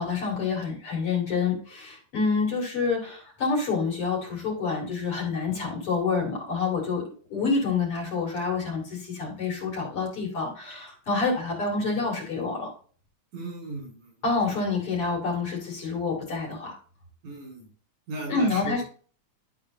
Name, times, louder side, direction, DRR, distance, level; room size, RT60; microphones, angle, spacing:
voice 1, 0.0-7.0 7.3-12.7 14.2-16.8 18.3-18.8, left 4 dB, 50° left, -1 dB, 3.9 m, -27 dB
voice 2, 13.3-14.0 17.2-17.7 18.1-18.8, right 2 dB, 80° right, -1 dB, 5.4 m, -36 dB
12.5 x 4.4 x 3.8 m, 0.41 s
omnidirectional pair, 3.4 m